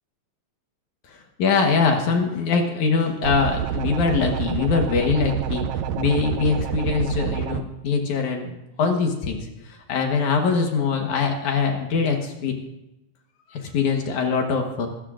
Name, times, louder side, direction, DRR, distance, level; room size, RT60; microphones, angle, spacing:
voice 1, 1.4-5.7 6.0-8.5 8.8-9.4 9.9-12.5 13.5-14.9, left 5 dB, 70° left, 3 dB, 2.6 m, -22 dB
sound 1, 3.2-7.6, right 9 dB, 80° right, 1.6 m, -27 dB
24.5 x 13.0 x 2.5 m, 0.92 s
omnidirectional pair, 3.8 m